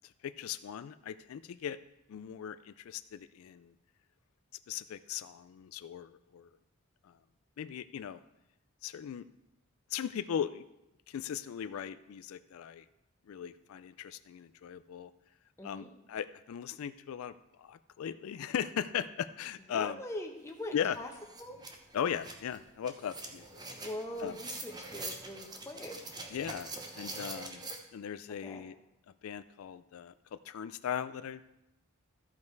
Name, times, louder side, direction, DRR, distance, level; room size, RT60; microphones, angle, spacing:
voice 1, 0.2-1.8 2.1-3.7 4.7-6.5 7.0-7.1 7.6-8.2 8.8-9.2 9.9-10.6 11.1-12.8 13.3-15.1 15.6-17.3 17.6-20.0 20.7-21.0 21.9-23.5 24.2-24.3 26.3-26.7 27.0-28.7 29.2-30.1 30.5-31.4, left 8 dB, 75° left, 13 dB, 0.3 m, -38 dB
voice 2, 15.6-15.9 19.7-21.1 21.4-21.6 23.7-26.0 28.3-28.6, left 1 dB, 15° left, 2 dB, 1.0 m, -42 dB
sound 1, 20.5-20.6 20.9-27.8, right 2 dB, 20° right, 0.9 m, -44 dB
13.5 x 5.4 x 4.6 m, 0.90 s
head